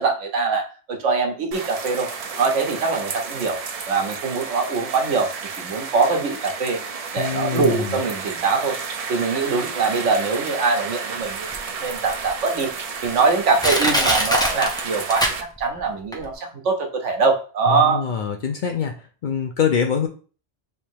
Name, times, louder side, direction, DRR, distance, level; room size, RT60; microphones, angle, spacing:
voice 1, 0.0-2.1 2.4-3.6 3.9-6.8 7.1-8.8 9.1-11.5 11.8-12.7 13.0-18.0, right 4 dB, 85° right, 3 dB, 1.2 m, -23 dB
sound 1, 1.5-15.4, right 5 dB, 60° right, 0.4 m, -32 dB
voice 2, 7.2-8.0 17.7-18.9 19.2-20.1, left 7 dB, 60° left, 4 dB, 0.5 m, -24 dB
Crushing, 11.5-11.6 12.3-12.4 13.0-13.1 13.6-15.8 16.1-16.2, equal, 5° left, 0.5 m, -22 dB
3.4 x 2.8 x 4.4 m, 0.38 s
omnidirectional pair, 1.2 m